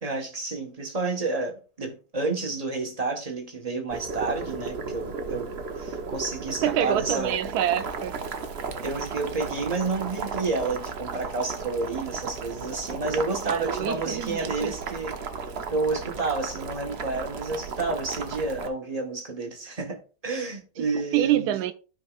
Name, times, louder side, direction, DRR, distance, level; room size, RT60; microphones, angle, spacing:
voice 1, 0.0-7.4 8.8-15.2 15.7-21.6, right 3 dB, 25° right, 1.3 m, -30 dB
Boiling, 3.9-18.7, right 4 dB, 50° right, 0.9 m, -35 dB
voice 2, 6.6-8.2 13.4-14.7 21.1-21.7, right 11 dB, 75° right, 1.2 m, -26 dB
13.5 x 5.2 x 2.4 m
omnidirectional pair, 1.8 m